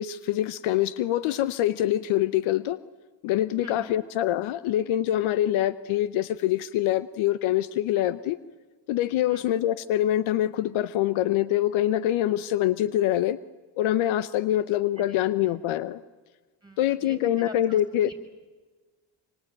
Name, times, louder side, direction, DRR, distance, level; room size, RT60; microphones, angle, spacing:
voice 1, 0.0-2.8 3.2-8.4 8.9-13.4 13.8-16.0 16.8-18.1, left 13 dB, 75° left, 16 dB, 1.0 m, -25 dB
voice 2, 3.6-3.9 9.3-9.5 14.5-14.6 15.0-15.6 16.6-18.1, equal, 10° right, 9 dB, 6.9 m, -44 dB
27.0 x 24.5 x 9.1 m, 1.3 s
supercardioid pair, 90°, 48 cm